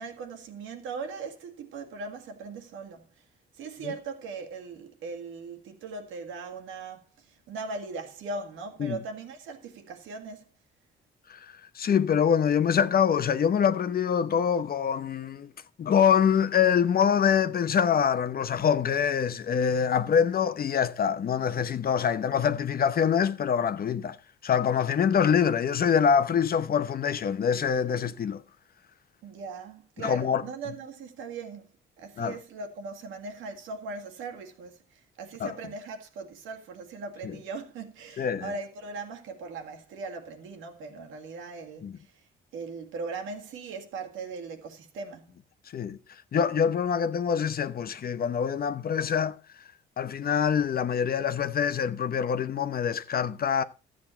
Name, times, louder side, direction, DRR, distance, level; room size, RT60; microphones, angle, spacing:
voice 1, 0.0-3.1 3.5-10.5 29.2-42.2 42.5-45.3, right 4 dB, 90° right, 2.0 m, -39 dB
voice 2, 11.7-15.5 15.8-24.2 24.4-28.4 30.0-30.4 32.2-32.4 35.4-35.5 37.2-37.4 38.2-38.5 41.8-41.9 45.7-46.0 46.3-49.4 50.0-53.6, left 7 dB, 50° left, 0.9 m, -25 dB
13.0 x 7.6 x 4.4 m
cardioid pair, 90°, 20 cm